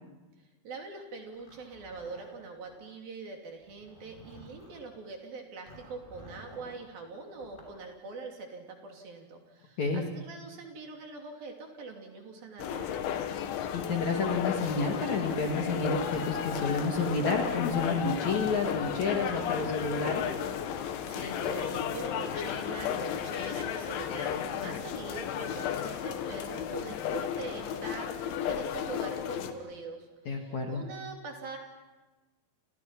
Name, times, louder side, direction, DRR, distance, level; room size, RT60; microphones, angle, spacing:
voice 1, 0.6-13.1 21.0-30.1 30.4-31.6, right 4 dB, 50° right, 2 dB, 4.4 m, -43 dB
Zipper (clothing), 1.3-2.8 3.6-4.8 5.7-6.8 7.3-7.8, equal, 10° left, 6.6 m, -52 dB
voice 2, 9.8-10.1 13.7-20.3 30.3-30.8, left 3 dB, 55° left, 2 dB, 2.2 m, -30 dB
sound 1, 12.6-29.5, left 9 dB, 75° left, 3.8 m, -34 dB
29.5 x 28.5 x 5.9 m, 1.2 s
omnidirectional pair, 5.7 m